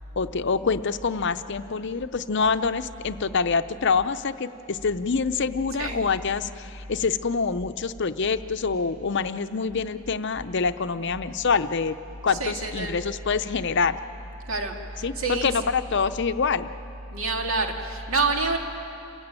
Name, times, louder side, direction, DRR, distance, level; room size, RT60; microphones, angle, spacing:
voice 1, 0.2-12.0 12.2-14.0 15.0-16.7, left 5 dB, 55° left, 11 dB, 0.6 m, -26 dB
voice 2, 12.3-13.0 14.5-15.6 17.1-18.6, right 3 dB, 65° right, 2 dB, 2.4 m, -27 dB
28.5 x 15.5 x 9.0 m, 2.7 s
head